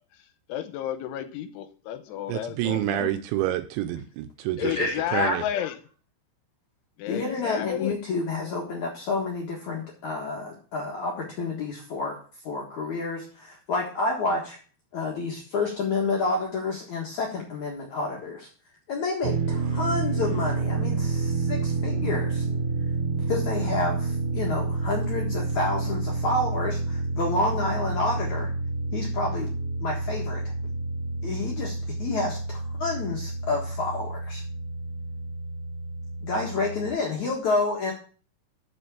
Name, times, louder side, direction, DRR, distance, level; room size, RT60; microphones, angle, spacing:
voice 1, 0.5-3.1 4.6-5.8 7.0-8.0, left 11 dB, 85° left, 10 dB, 3.1 m, -32 dB
voice 2, 2.3-4.7 5.1-5.4, right 12 dB, 80° right, 8 dB, 2.7 m, -28 dB
voice 3, 4.6-5.4 7.1-12.2 12.4-14.6 14.9-18.5 18.9-22.5 23.3-28.5 28.9-29.5 29.8-30.4 31.2-34.4 36.2-37.9, left 3 dB, 65° left, -1 dB, 1.9 m, -29 dB
sound 1, 19.2-36.9, right 3 dB, 65° right, 2.5 m, -29 dB
7.2 x 6.8 x 6.8 m, 0.40 s
omnidirectional pair, 5.6 m